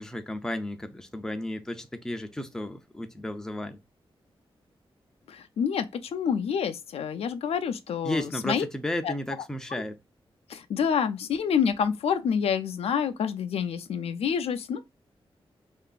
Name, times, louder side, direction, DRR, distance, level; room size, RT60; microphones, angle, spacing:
voice 1, 0.0-3.8 8.0-10.0, left 1 dB, 5° left, 0.4 m, -33 dB
voice 2, 5.3-8.7 9.0-9.1 10.5-14.8, left 7 dB, 85° left, 0.4 m, -28 dB
2.9 x 2.5 x 2.3 m
wide cardioid pair, 120°, 10 cm